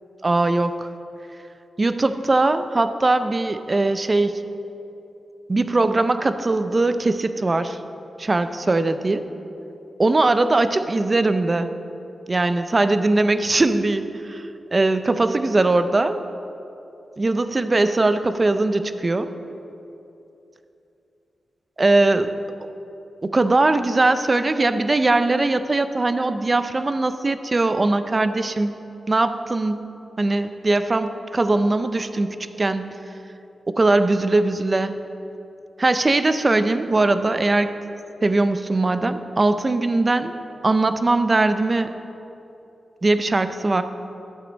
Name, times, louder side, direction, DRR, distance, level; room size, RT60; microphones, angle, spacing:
voice 1, 0.2-0.9 1.8-4.4 5.5-7.8 8.2-9.3 10.0-11.7 12.3-16.2 17.2-19.3 21.8-22.3 23.3-28.8 29.1-29.8 30.2-33.0 33.7-35.1 35.8-37.7 38.2-40.3 40.6-41.9 43.0-43.8, right 2 dB, 30° right, 10 dB, 0.5 m, -20 dB
12.5 x 8.3 x 4.0 m, 2.8 s
wide cardioid pair, 120°, 0 cm